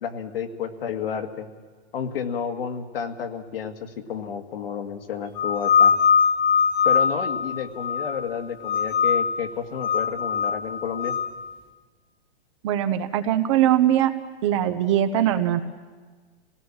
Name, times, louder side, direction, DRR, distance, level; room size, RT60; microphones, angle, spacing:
voice 1, 0.0-1.5 1.9-5.9 6.8-11.2, left 7 dB, 65° left, 6 dB, 2.0 m, -31 dB
sound 1, 5.4-8.3 8.6-9.4 9.8-11.3, left 6 dB, 15° left, 0.7 m, -22 dB
voice 2, 12.6-14.1 14.4-15.6, right 11 dB, 30° right, 10 dB, 0.9 m, -21 dB
25.5 x 18.0 x 7.3 m, 1.4 s
hypercardioid pair, 165°, 31 cm